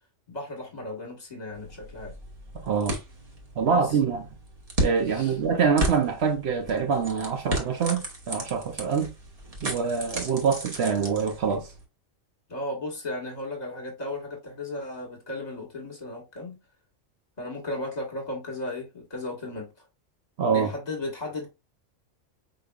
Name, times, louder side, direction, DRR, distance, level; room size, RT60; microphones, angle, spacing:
voice 1, 0.3-2.2 3.6-4.0 5.0-5.4 12.5-16.6 17.4-19.7 20.5-21.5, left 2 dB, 35° left, 1.5 m, -35 dB
sound 1, 1.5-11.8, right 1 dB, 30° right, 1.2 m, -35 dB
voice 2, 2.6-3.0 3.6-4.2 4.8-9.1 9.6-11.7 20.4-20.7, right 6 dB, 65° right, 0.9 m, -25 dB
5.1 x 3.9 x 2.3 m
omnidirectional pair, 1.3 m